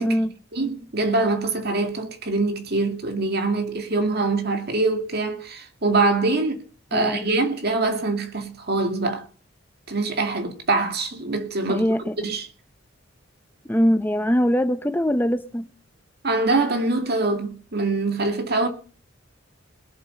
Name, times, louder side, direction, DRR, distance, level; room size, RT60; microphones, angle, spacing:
voice 1, 0.0-0.3 6.9-7.2 11.7-12.1 13.7-15.7, equal, 10° left, 0.6 m, -22 dB
voice 2, 0.5-6.6 6.9-9.3 9.9-11.9 12.2-12.5 16.2-18.7, right 3 dB, 55° right, 2.2 m, -24 dB
21.0 x 7.5 x 5.6 m
head